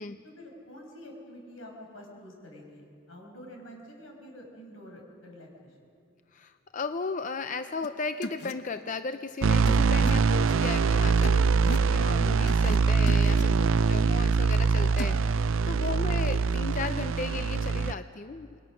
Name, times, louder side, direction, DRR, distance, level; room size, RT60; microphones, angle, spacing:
voice 1, 0.2-5.8, equal, 80° left, 1 dB, 5.7 m, -47 dB
voice 2, 6.3-18.6, left 4 dB, 40° left, 10 dB, 0.5 m, -36 dB
sound 1, 7.8-7.9 8.2-8.5 9.7-10.1 11.2-11.9 12.5-12.8 13.1-13.4 15.0-15.2, left 1 dB, 55° left, 1.1 m, -37 dB
sound 2, 9.4-17.9, right 5 dB, 75° right, 0.5 m, -23 dB
28.0 x 22.0 x 6.3 m, 2.5 s
head